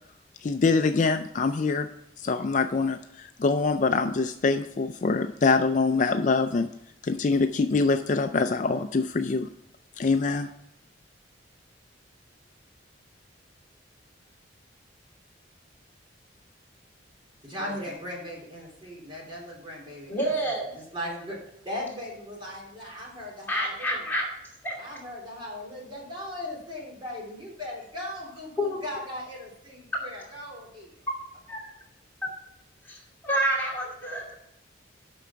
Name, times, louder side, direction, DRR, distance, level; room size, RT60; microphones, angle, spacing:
voice 1, 0.4-1.9 2.2-6.7 7.0-9.5 10.0-10.5, left 4 dB, 40° left, 8 dB, 0.4 m, -24 dB
voice 2, 17.4-21.4 21.6-24.0 24.8-30.9, left 1 dB, 25° right, -3 dB, 3.3 m, -38 dB
voice 3, 20.1-20.6 23.5-24.3 24.6-25.0 28.6-28.8 31.5-31.7 32.2-32.3 32.8-34.3, right 1 dB, 10° left, -4 dB, 2.6 m, -28 dB
8.4 x 6.2 x 5.7 m, 0.78 s
head